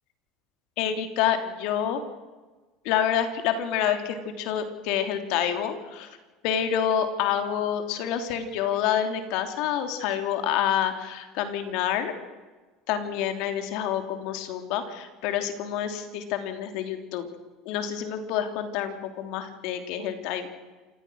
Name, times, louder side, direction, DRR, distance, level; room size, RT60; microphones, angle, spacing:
voice 1, 0.8-2.0 2.8-6.1 6.4-12.1 12.9-17.3 17.6-20.5, left 9 dB, 70° left, 7 dB, 3.2 m, -28 dB
28.0 x 17.0 x 6.4 m, 1.3 s
supercardioid pair, 105°, 0 cm